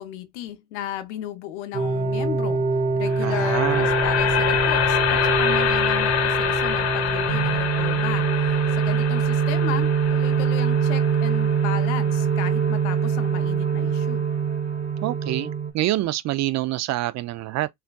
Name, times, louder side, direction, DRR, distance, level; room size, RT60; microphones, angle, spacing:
voice 1, 0.0-2.6 3.0-14.3, left 11 dB, 85° left, 0.7 m, -35 dB
sound 1, 1.7-15.7, right 5 dB, 25° right, 0.9 m, -23 dB
sound 2, 3.1-13.2, left 9 dB, 50° left, 1.0 m, -26 dB
voice 2, 3.2-3.9 15.0-17.7, right 15 dB, 55° right, 0.4 m, -26 dB
5.5 x 2.3 x 2.2 m
hypercardioid pair, 65°, 34 cm